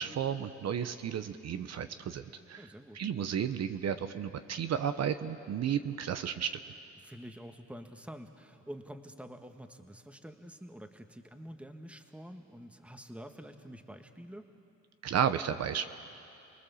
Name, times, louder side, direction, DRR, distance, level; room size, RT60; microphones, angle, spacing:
voice 1, 0.0-2.6 2.9-6.6 15.0-15.9, right 8 dB, 60° right, 9 dB, 0.9 m, -33 dB
voice 2, 2.6-3.0 7.0-14.5, equal, 5° right, 6 dB, 1.6 m, -47 dB
30.0 x 20.0 x 7.1 m, 2.6 s
cardioid pair, 90°, 30 cm